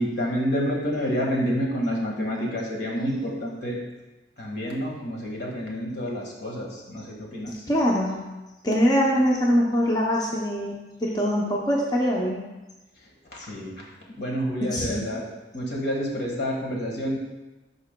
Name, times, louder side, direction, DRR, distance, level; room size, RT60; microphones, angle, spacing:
voice 1, 0.0-3.8 4.4-7.5 13.5-13.7 14.2-15.2 15.5-17.2, equal, 70° left, -2 dB, 1.6 m, -28 dB
voice 2, 7.7-8.3 8.6-12.4 14.6-15.2, equal, 20° left, -3 dB, 0.7 m, -23 dB
11.5 x 4.9 x 2.2 m, 1.1 s
head